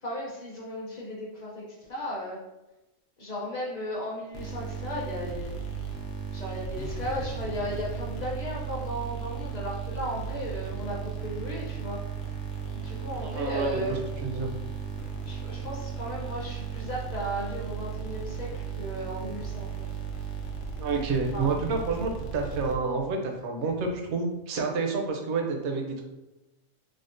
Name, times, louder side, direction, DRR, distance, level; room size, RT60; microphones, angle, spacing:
voice 1, 0.0-2.4 3.2-5.5 6.3-12.0 12.7-14.0 15.3-19.9 21.3-21.7, equal, 45° left, -4 dB, 0.6 m, -36 dB
sound 1, 4.3-23.1, right 6 dB, 70° left, 0.9 m, -36 dB
voice 2, 13.2-14.5 20.8-26.0, right 4 dB, 70° right, 2 dB, 0.8 m, -29 dB
3.4 x 2.1 x 2.5 m, 1.0 s
omnidirectional pair, 1.3 m